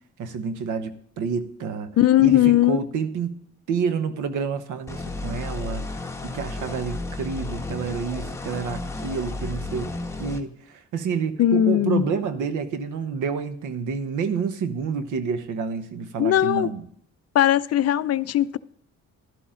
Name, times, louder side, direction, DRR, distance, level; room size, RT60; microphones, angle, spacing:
voice 1, 0.2-1.9 2.2-3.4 3.7-5.8 6.2-9.9 10.2-16.8, right 5 dB, 80° right, 1.1 m, -28 dB
voice 2, 2.0-2.8 11.4-12.0 16.2-16.7 17.3-18.6, left 12 dB, 55° left, 0.5 m, -19 dB
sound 1, 4.9-10.4, left 2 dB, 10° left, 1.3 m, -33 dB
12.0 x 11.5 x 3.8 m
cardioid pair, 90°, 30 cm